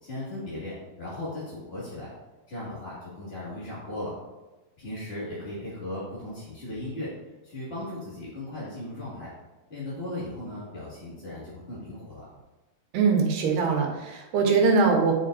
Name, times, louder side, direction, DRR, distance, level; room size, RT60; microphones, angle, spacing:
voice 1, 0.0-2.1 2.5-4.1 4.8-7.1 7.4-9.3 9.7-12.2, left 1 dB, 35° left, -9 dB, 1.0 m, -37 dB
voice 2, 12.9-15.1, right 4 dB, 85° right, 0 dB, 3.1 m, -22 dB
10.5 x 4.9 x 2.5 m, 1.1 s
omnidirectional pair, 4.4 m